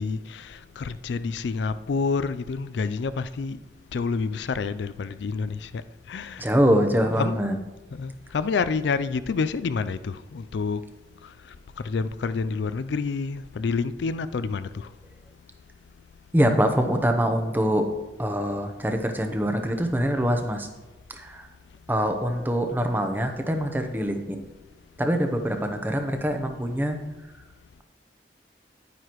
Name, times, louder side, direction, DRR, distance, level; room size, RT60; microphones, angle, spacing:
voice 1, 0.0-3.6 3.9-5.8 6.1-6.4 7.2-7.4 7.9-10.8 11.8-14.9, left 4 dB, 75° left, 0.4 m, -28 dB
voice 2, 6.4-7.6 16.3-17.9 18.2-20.7 21.1-21.5 21.9-24.4 25.0-27.0, equal, 10° right, 0.7 m, -24 dB
9.9 x 9.4 x 3.0 m
head